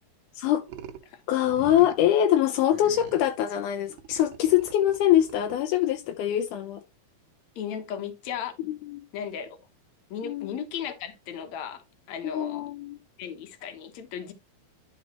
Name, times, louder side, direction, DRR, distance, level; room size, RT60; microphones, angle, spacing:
sound 1, 0.7-1.1 1.4-2.1 2.7-3.3 3.9-6.0, right 8 dB, 70° right, 2.2 m, -44 dB
voice 1, 1.3-6.8 8.7-9.1 10.2-10.6 12.2-13.0, left 11 dB, 80° left, 1.8 m, -24 dB
voice 2, 7.6-8.5 9.1-9.6 10.1-12.7 13.2-14.3, left 8 dB, 60° left, 2.0 m, -36 dB
12.0 x 4.2 x 3.0 m
omnidirectional pair, 4.4 m